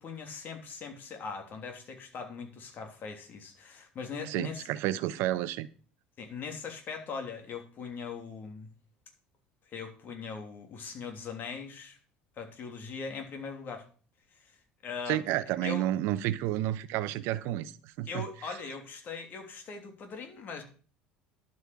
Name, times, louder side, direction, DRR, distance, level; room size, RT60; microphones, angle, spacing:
voice 1, 0.0-4.7 6.2-8.7 9.7-12.0 12.4-13.8 14.3-14.6 14.8-15.2 15.6-15.9 18.1-20.6, left 5 dB, 45° left, 3.1 m, -40 dB
voice 2, 4.3-5.7 15.1-18.3, right 14 dB, 65° right, 0.9 m, -31 dB
11.5 x 5.5 x 7.7 m
hypercardioid pair, 70°, 4 cm